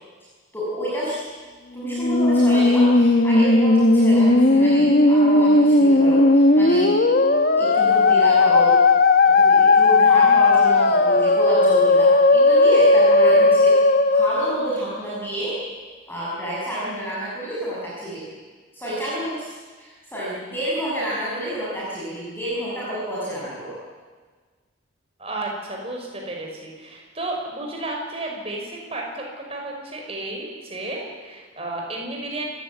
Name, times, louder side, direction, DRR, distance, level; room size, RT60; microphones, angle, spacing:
voice 1, 0.5-1.2 1.7-6.9 7.6-8.7 9.2-13.8 14.1-15.5 16.1-18.2 18.7-23.8, right 1 dB, 10° left, -8 dB, 6.9 m, -29 dB
Musical instrument, 1.8-15.2, left 2 dB, 45° left, 1.3 m, -16 dB
voice 2, 25.2-32.4, right 2 dB, 30° right, 0 dB, 6.0 m, -32 dB
29.0 x 15.5 x 9.8 m, 1.4 s
head